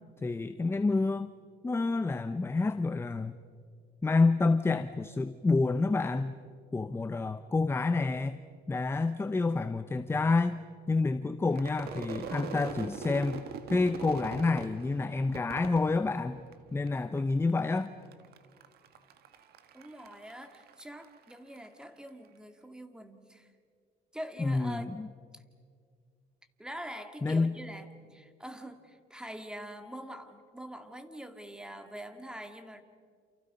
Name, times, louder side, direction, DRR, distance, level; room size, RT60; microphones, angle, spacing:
voice 1, 0.2-1.3 1.6-3.3 4.0-6.4 6.7-8.4 8.7-10.6 10.9-16.4 16.7-17.9 24.4-25.1 27.2-27.5, left 3 dB, 15° left, 11 dB, 0.7 m, -28 dB
Crowd / Fireworks, 11.5-16.9 17.2-17.8 18.1-21.7, right 6 dB, 70° right, 1.7 m, -42 dB
voice 2, 19.7-23.5 24.1-24.9 25.3-25.4 26.6-32.8, equal, 5° right, 7 dB, 2.0 m, -44 dB
29.0 x 28.5 x 5.4 m, 2.1 s
cardioid pair, 110°, 17 cm